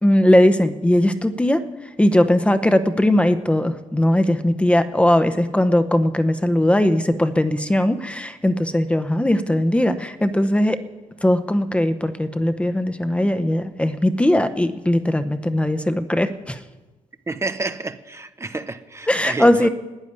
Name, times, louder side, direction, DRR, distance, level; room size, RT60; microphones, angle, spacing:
voice 1, 0.0-1.6 2.0-10.8 11.2-16.6 19.1-19.7, left 1 dB, 10° left, 0.8 m, -19 dB
voice 2, 17.3-19.7, right 3 dB, 20° right, 0.7 m, -29 dB
12.0 x 9.3 x 9.6 m
cardioid pair, 105°, 13 cm